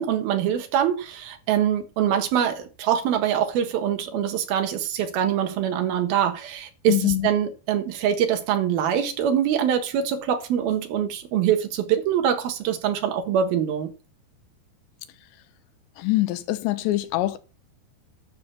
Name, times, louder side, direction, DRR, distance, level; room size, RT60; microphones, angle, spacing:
voice 1, 0.0-13.9, right 9 dB, 65° right, 2.9 m, -24 dB
voice 2, 6.9-7.3 16.0-17.4, left 17 dB, 85° left, 3.0 m, -23 dB
12.5 x 6.0 x 6.1 m
omnidirectional pair, 5.0 m